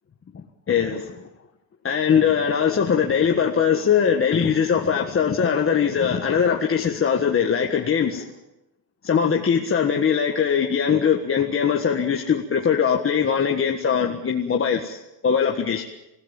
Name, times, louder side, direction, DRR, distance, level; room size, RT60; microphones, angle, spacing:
voice 1, 0.7-1.2 1.8-8.3 9.0-15.8, left 7 dB, 30° left, 2 dB, 1.6 m, -21 dB
28.0 x 16.0 x 7.2 m, 0.94 s
cardioid pair, 130°, 44 cm